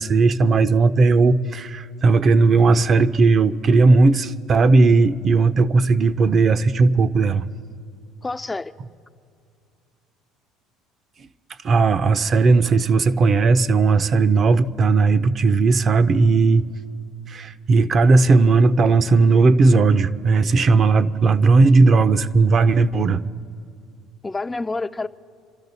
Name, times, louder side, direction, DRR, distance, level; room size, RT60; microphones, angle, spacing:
voice 1, 0.0-7.4 11.6-16.7 17.3-23.2, right 3 dB, 40° right, 0.6 m, -16 dB
voice 2, 8.2-8.7 24.2-25.1, left 3 dB, 20° left, 0.4 m, -28 dB
27.5 x 12.5 x 4.1 m
supercardioid pair, 85°, 0 cm